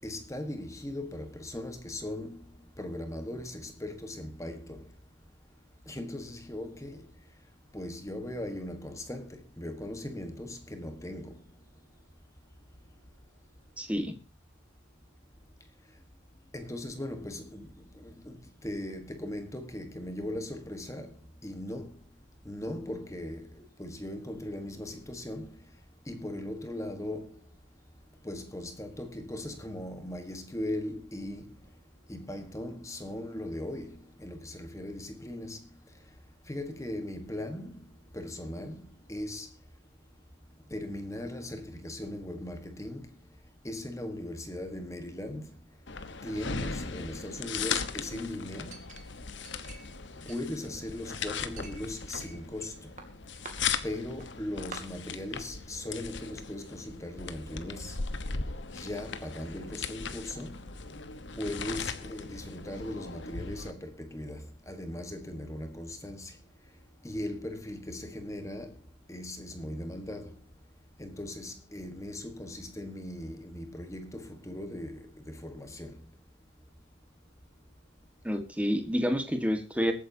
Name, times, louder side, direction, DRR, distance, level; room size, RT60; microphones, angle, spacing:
voice 1, 0.0-2.4 2.8-4.8 5.9-7.0 7.7-11.3 16.5-17.7 18.0-18.4 18.6-21.1 21.4-21.9 22.4-25.5 26.1-27.3 28.2-31.5 32.1-35.6 36.5-37.7 38.1-39.5 40.7-43.1 43.6-45.4 46.2-48.8 50.3-52.7 53.8-58.0 58.7-60.6 61.4-66.3 67.0-68.7 69.1-70.3 71.0-75.9, left 1 dB, 15° left, 1.3 m, -38 dB
voice 2, 13.8-14.1 78.2-79.9, equal, 5° right, 1.5 m, -29 dB
sound 1, 45.9-63.7, left 5 dB, 55° left, 1.1 m, -38 dB
Chink clink, 48.7-50.0 50.3-51.1 51.6-52.7 53.0-53.5 54.2-54.3 54.7-54.8, right 4 dB, 35° right, 2.6 m, -47 dB
22.5 x 9.2 x 2.8 m
head